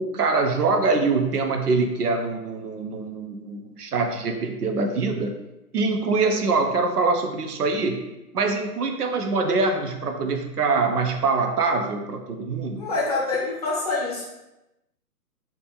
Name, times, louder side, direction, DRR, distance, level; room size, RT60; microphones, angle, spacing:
voice 1, 0.0-5.3 5.7-8.0 8.3-12.8, right 3 dB, 70° right, 4 dB, 0.8 m, -24 dB
voice 2, 12.8-14.2, left 3 dB, 25° left, -5 dB, 0.7 m, -26 dB
5.1 x 2.9 x 3.4 m, 0.96 s
hypercardioid pair, 160°, 48 cm